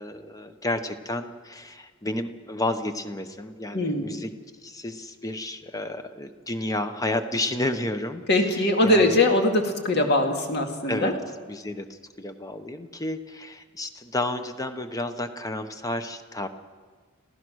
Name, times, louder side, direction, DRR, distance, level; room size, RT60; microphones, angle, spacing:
voice 1, 0.0-4.3 4.6-9.2 10.9-11.1 11.5-16.5, left 1 dB, 15° left, 8 dB, 1.0 m, -31 dB
voice 2, 3.7-4.1 8.3-11.1, left 1 dB, 55° left, 3 dB, 2.3 m, -21 dB
27.5 x 15.5 x 6.4 m, 1.5 s
head